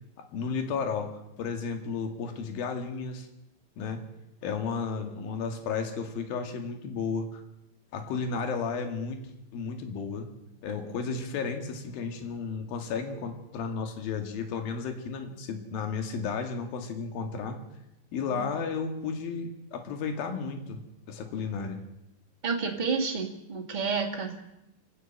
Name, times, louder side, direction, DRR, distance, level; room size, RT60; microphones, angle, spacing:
voice 1, 0.3-3.3 3.8-4.0 4.4-7.4 7.9-10.3 10.6-17.6 18.1-21.8, left 5 dB, 55° left, 5 dB, 3.5 m, -33 dB
voice 2, 22.4-24.3, right 5 dB, 60° right, 1 dB, 0.4 m, -30 dB
29.0 x 9.9 x 8.9 m, 0.90 s
omnidirectional pair, 5.4 m